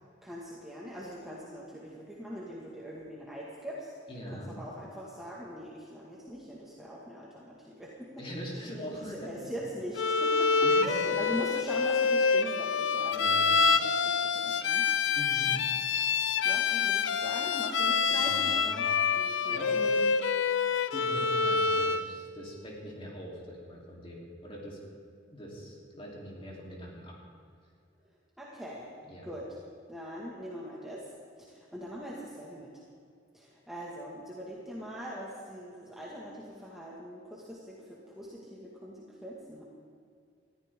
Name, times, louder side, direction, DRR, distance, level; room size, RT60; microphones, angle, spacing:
voice 1, 0.2-3.9 4.3-7.9 8.5-8.7 8.9-10.5 10.8-14.9 16.4-19.6 28.4-28.9 29.2-29.4 29.9-31.1 31.4-32.8 33.3-39.6, equal, ahead, -6 dB, 1.9 m, -42 dB
voice 2, 4.1-4.6 8.2-9.3 10.6-11.0 13.1-13.5 15.1-15.6 18.1-19.0 19.5-20.1 20.9-24.8 25.3-27.1 29.1-29.3, equal, 30° left, -3 dB, 3.6 m, -42 dB
Bowed string instrument, 10.0-22.1, left 5 dB, 90° left, 0.6 m, -27 dB
21.0 x 14.5 x 3.7 m, 2.3 s
head